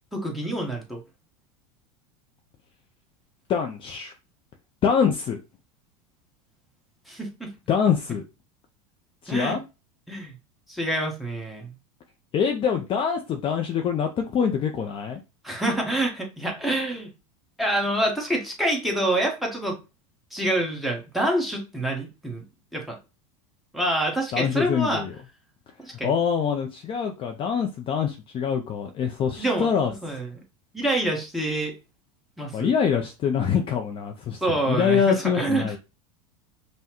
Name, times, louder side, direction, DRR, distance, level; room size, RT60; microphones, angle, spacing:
voice 1, 0.1-1.0 7.1-7.5 9.3-9.6 10.1-10.3 10.7-11.8 15.4-17.1 17.6-19.8 20.3-22.4 22.7-23.0 23.7-25.0 25.8-26.1 29.4-30.3 30.7-31.8 32.4-32.8 34.4-35.8, right 1 dB, ahead, 1.1 m, -27 dB
voice 2, 3.5-4.1 4.8-5.4 7.7-8.2 9.2-9.6 12.3-15.2 24.3-25.1 26.0-29.9 32.5-35.8, left 7 dB, 30° left, 0.5 m, -24 dB
5.5 x 2.2 x 2.9 m
supercardioid pair, 120°, 18 cm